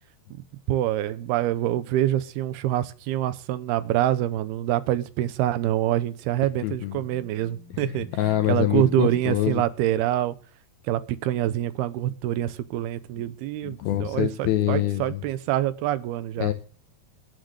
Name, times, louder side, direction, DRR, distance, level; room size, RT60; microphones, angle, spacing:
voice 1, 0.7-8.1 8.5-10.4 10.8-16.5, right 13 dB, 80° right, 15 dB, 2.8 m, -26 dB
voice 2, 6.6-7.0 7.8-9.6 13.6-15.2 16.4-16.5, left 13 dB, 75° left, 7 dB, 2.6 m, -25 dB
sound 1, 6.9-9.2, left 6 dB, 55° right, 5.8 m, -47 dB
12.0 x 10.5 x 6.7 m, 0.39 s
omnidirectional pair, 4.7 m